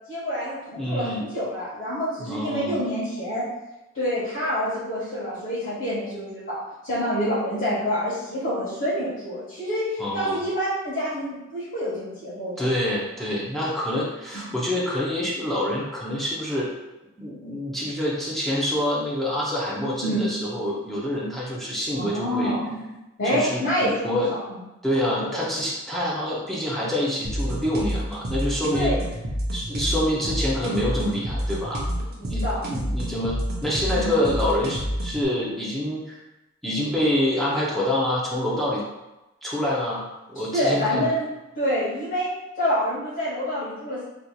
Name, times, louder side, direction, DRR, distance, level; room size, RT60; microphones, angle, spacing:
voice 1, 0.1-3.5 3.9-6.6 6.8-12.7 14.3-14.6 20.0-20.3 22.0-22.8 23.2-24.6 25.3-25.4 28.7-29.0 32.3-32.6 33.9-34.1 40.5-41.3 41.5-42.3 42.6-44.0, equal, 65° left, -12 dB, 1.3 m, -27 dB
voice 2, 0.8-1.2 2.2-2.8 10.0-10.4 12.6-16.7 17.2-22.5 23.2-24.3 24.8-28.9 29.5-31.9 32.2-36.2 36.6-38.8 39.4-41.1, left 1 dB, ahead, -6 dB, 0.6 m, -26 dB
sound 1, 27.2-35.2, equal, 50° right, 0.6 m, -29 dB
4.0 x 3.0 x 2.3 m, 1.0 s
head